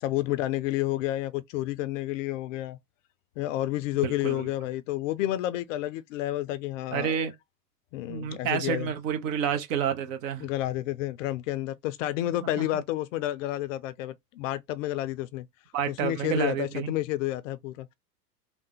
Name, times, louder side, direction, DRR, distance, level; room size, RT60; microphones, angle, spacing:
voice 1, 0.0-2.8 3.4-7.2 7.9-8.9 10.4-15.5 15.9-17.9, left 15 dB, 55° left, 0.5 m, -30 dB
voice 2, 4.0-4.5 6.9-7.3 8.1-10.5 12.6-12.7 15.7-16.9, right 8 dB, 55° right, 0.8 m, -29 dB
3.4 x 2.1 x 2.9 m
hypercardioid pair, 90°, 48 cm